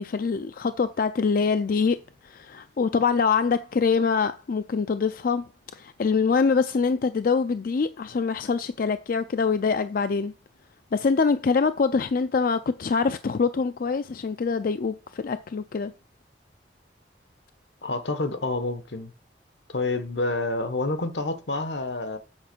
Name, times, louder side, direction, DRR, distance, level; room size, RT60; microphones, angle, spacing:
voice 1, 0.0-10.3 10.9-15.9, left 5 dB, 50° left, 0.4 m, -24 dB
voice 2, 17.8-19.1 19.7-22.2, left 2 dB, 80° left, 1.2 m, -28 dB
7.9 x 4.5 x 6.0 m
head